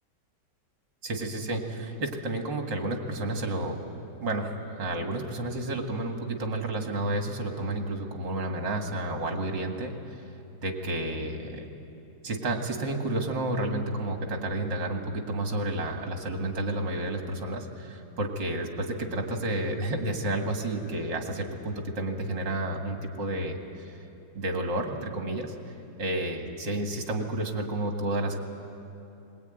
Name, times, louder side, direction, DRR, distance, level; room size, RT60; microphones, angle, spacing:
voice 1, 1.0-3.9 4.2-9.9 10.6-11.7 12.2-23.6 24.3-25.5 26.0-28.4, right 1 dB, 60° right, 3 dB, 2.8 m, -31 dB
21.0 x 21.0 x 9.3 m, 2.8 s
omnidirectional pair, 2.3 m